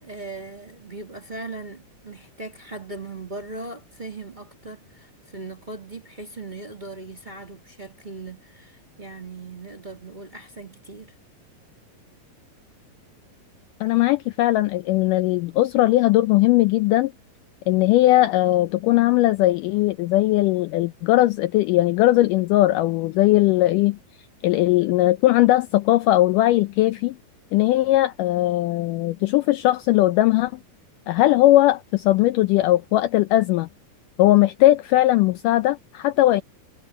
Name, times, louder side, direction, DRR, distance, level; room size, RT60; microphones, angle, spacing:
voice 1, 0.0-11.1, right 2 dB, 15° right, 1.9 m, -39 dB
voice 2, 13.8-17.1 17.7-24.0 24.4-27.2 27.5-30.6 31.1-33.7 34.2-36.4, left 16 dB, 80° left, 1.9 m, -19 dB
omnidirectional pair, 4.2 m